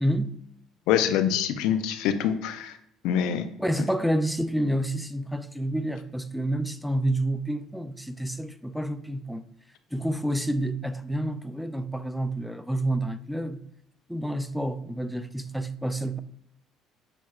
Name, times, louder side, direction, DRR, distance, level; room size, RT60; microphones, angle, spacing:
voice 1, 0.0-0.4 3.6-9.4 9.9-13.6 14.1-16.2, right 1 dB, ahead, 0.3 m, -29 dB
voice 2, 0.9-2.8 3.0-3.4, left 9 dB, 80° left, 0.4 m, -25 dB
6.4 x 2.9 x 2.3 m
supercardioid pair, 85°, 0 cm